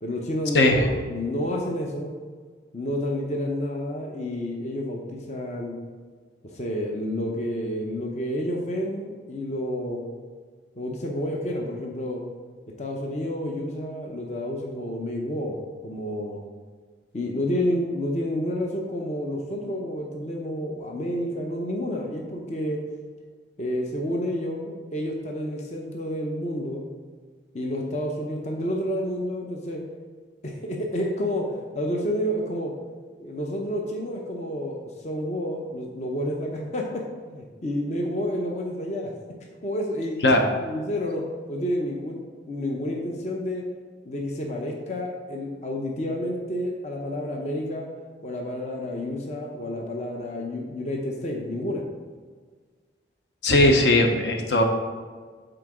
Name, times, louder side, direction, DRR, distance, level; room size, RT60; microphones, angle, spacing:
voice 1, 0.0-2.1 2.7-5.8 6.4-10.0 10.8-12.2 12.8-15.6 15.8-16.4 17.1-22.8 23.6-26.8 27.5-29.8 30.4-32.7 33.2-39.1 39.6-43.7 44.0-47.9 48.2-51.8, left 1 dB, 40° left, 0 dB, 0.7 m, -30 dB
voice 2, 0.5-0.9 40.2-40.4 53.4-54.6, left 1 dB, 70° left, 3 dB, 0.8 m, -18 dB
7.9 x 3.9 x 4.9 m, 1.5 s
head